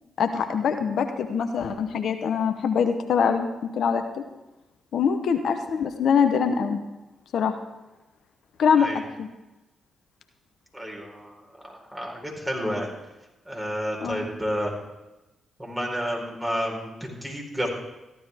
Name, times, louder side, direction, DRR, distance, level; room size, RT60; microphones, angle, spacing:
voice 1, 0.2-3.5 3.7-4.0 4.9-6.8 7.3-7.5 8.6-9.3 12.6-12.8 14.0-14.3, left 6 dB, 65° left, 7 dB, 0.8 m, -23 dB
voice 2, 10.7-12.9 13.5-14.7 15.6-17.7, equal, 15° right, -1 dB, 4.1 m, -31 dB
14.5 x 11.5 x 3.5 m, 1.0 s
hypercardioid pair, 45°, 0 cm